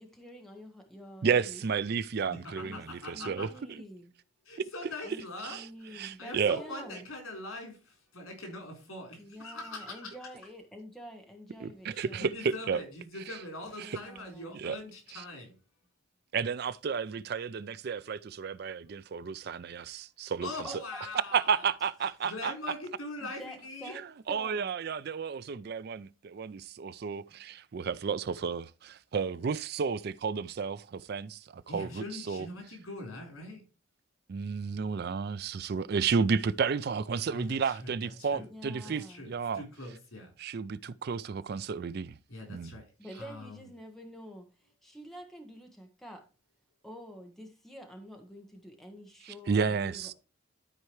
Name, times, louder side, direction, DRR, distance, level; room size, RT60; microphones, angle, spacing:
voice 1, 0.0-1.7 2.6-2.8 3.1-4.1 5.0-7.0 9.2-12.3 13.7-14.5 20.6-20.8 23.2-24.7 38.4-39.2 43.0-46.2 46.8-50.1, equal, ahead, 1.2 m, -48 dB
voice 2, 1.2-3.8 4.6-4.7 5.4-5.6 5.9-6.6 11.6-12.8 13.8-14.0 14.5-14.8 15.1-15.2 16.3-20.5 21.3-22.5 24.3-32.5 34.3-39.6 40.4-42.2 42.5-42.7 49.3-50.1, right 6 dB, 50° right, 0.4 m, -32 dB
voice 3, 2.3-3.5 4.4-10.2 11.9-15.6 20.4-21.6 22.2-23.9 31.7-33.6 37.3-38.5 38.8-40.3 42.3-42.9 43.2-43.7, left 2 dB, 80° left, 3.9 m, -42 dB
12.5 x 4.6 x 3.1 m
head